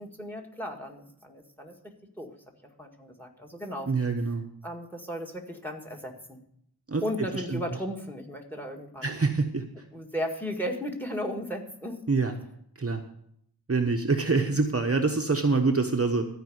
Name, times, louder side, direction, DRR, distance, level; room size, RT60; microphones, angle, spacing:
voice 1, 0.0-2.3 2.8-3.9 4.6-6.4 7.0-9.2 9.9-12.1, equal, 5° left, 4 dB, 1.9 m, -35 dB
voice 2, 3.9-4.4 6.9-7.0 7.3-7.6 9.0-9.7 12.1-12.3 12.8-13.0 13.7-16.3, right 4 dB, 35° right, 3 dB, 1.0 m, -25 dB
14.0 x 5.0 x 7.9 m, 0.70 s
wide cardioid pair, 75°, 39 cm